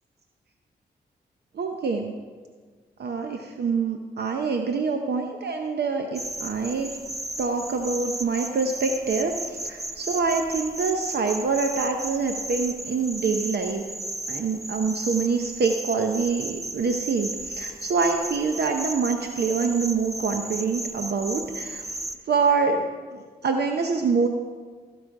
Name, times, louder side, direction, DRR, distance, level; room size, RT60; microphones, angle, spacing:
voice 1, 1.5-2.1 3.0-6.9 7.4-13.8 14.3-22.0 22.2-24.3, right 4 dB, 70° right, 4 dB, 0.7 m, -25 dB
sound 1, 6.1-22.2, right 1 dB, 20° right, 0.7 m, -35 dB
14.5 x 5.1 x 4.7 m, 1.5 s
cardioid pair, 55°, 17 cm